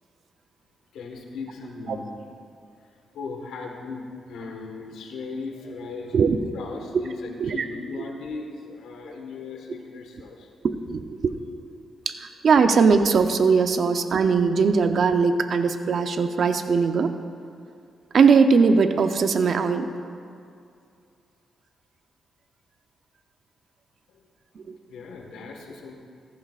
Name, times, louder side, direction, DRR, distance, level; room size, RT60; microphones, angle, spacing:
voice 1, 0.9-2.2 2.8-6.2 6.5-10.5 24.1-24.3 24.9-25.9, left 4 dB, 90° left, 2 dB, 1.5 m, -37 dB
voice 2, 10.6-11.3 12.1-17.1 18.1-19.9 24.7-24.8, right 5 dB, 60° right, 8 dB, 0.7 m, -20 dB
14.5 x 14.5 x 2.5 m, 2.4 s
cardioid pair, 90°, 0 cm